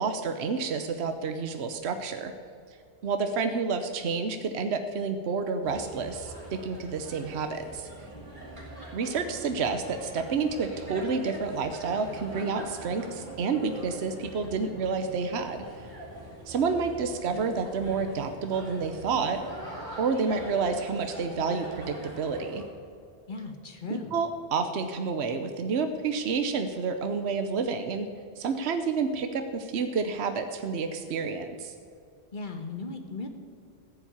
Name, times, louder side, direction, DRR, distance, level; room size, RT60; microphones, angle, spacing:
voice 1, 0.0-2.3 3.0-7.9 8.9-15.6 16.5-19.4 20.0-22.6 23.9-28.1 28.4-31.7, right 5 dB, 70° right, 7 dB, 1.1 m, -29 dB
sound 1, 5.6-22.7, right 1 dB, 45° right, 4.5 m, -42 dB
voice 2, 23.3-24.2 32.3-33.3, left 3 dB, 45° left, 6 dB, 1.6 m, -37 dB
15.0 x 7.3 x 9.4 m, 2.5 s
omnidirectional pair, 1.1 m